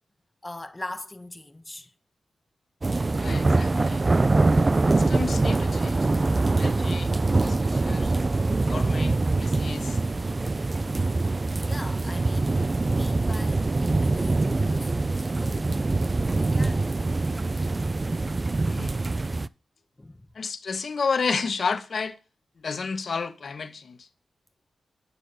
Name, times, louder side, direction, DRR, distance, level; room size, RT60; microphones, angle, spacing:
voice 1, 0.4-1.9 11.7-15.8 16.1-16.9 20.0-20.3, left 2 dB, 15° left, 0.6 m, -41 dB
sound 1, 2.8-19.5, right 3 dB, 30° right, 0.3 m, -24 dB
voice 2, 3.2-4.1 4.9-6.1 6.5-8.1 8.7-10.0 18.6-19.0 20.3-22.1 22.6-24.1, left 5 dB, 55° left, 0.9 m, -32 dB
9.6 x 6.4 x 4.0 m
wide cardioid pair, 95°, 0 cm